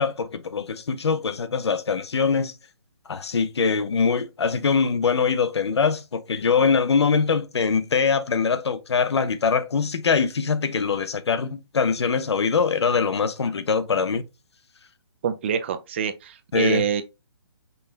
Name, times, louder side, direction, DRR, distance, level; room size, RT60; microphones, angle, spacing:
voice 1, 0.0-2.5 3.1-14.2 16.5-16.8, left 5 dB, 85° left, 0.8 m, -23 dB
voice 2, 15.2-17.0, right 7 dB, 25° right, 0.4 m, -26 dB
5.4 x 2.1 x 3.9 m
hypercardioid pair, 165°, 14 cm